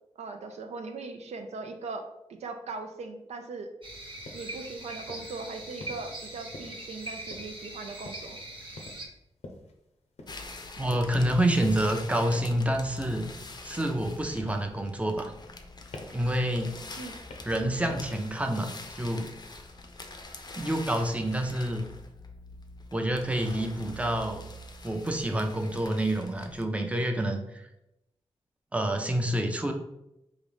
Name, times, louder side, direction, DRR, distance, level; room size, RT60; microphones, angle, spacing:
voice 1, 0.2-2.1 2.4-3.7 4.3-8.4 17.0-17.2, right 3 dB, 85° right, 5 dB, 0.4 m, -39 dB
sound 1, 3.8-9.1, right 1 dB, 50° right, 1.1 m, -42 dB
sound 2, 4.3-4.5 5.1-5.4 5.8-6.1 6.5-7.0 7.3-7.7 8.1-8.4 8.8-9.1 9.4-9.7 10.2-10.5 10.9-11.2 11.6-12.0 12.4-12.6 13.1-13.4 13.8-14.2 14.5-14.8 15.2-15.7 15.9-16.3 16.6-16.9 17.3-17.6 17.9-18.2 18.6-18.9, left 2 dB, 80° left, 0.6 m, -45 dB
sound 3, 10.3-26.6, left 2 dB, 40° left, 0.5 m, -45 dB
voice 2, 10.8-13.3 13.6-15.3 16.1-16.7 17.5-19.3 20.6-21.8 22.9-24.4 24.8-27.6 28.7-29.7, right 1 dB, 10° right, 4 dB, 0.5 m, -28 dB
3.8 x 2.5 x 3.3 m, 0.86 s
cardioid pair, 60°, 11 cm